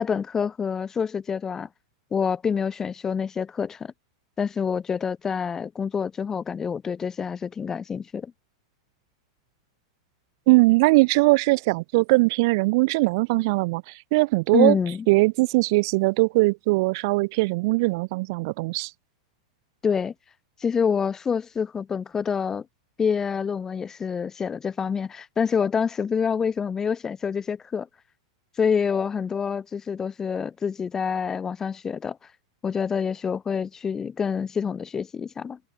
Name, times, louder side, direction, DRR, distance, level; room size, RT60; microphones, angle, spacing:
voice 1, 0.0-1.7 2.1-3.9 4.4-8.3 14.5-15.0 19.8-20.1 20.6-22.7 23.0-27.9 28.6-32.2 32.6-35.6, left 6 dB, 20° left, 0.8 m, -27 dB
voice 2, 10.5-14.7 15.1-18.9, right 24 dB, 55° right, 0.6 m, -20 dB
hypercardioid pair, 105°, 2 cm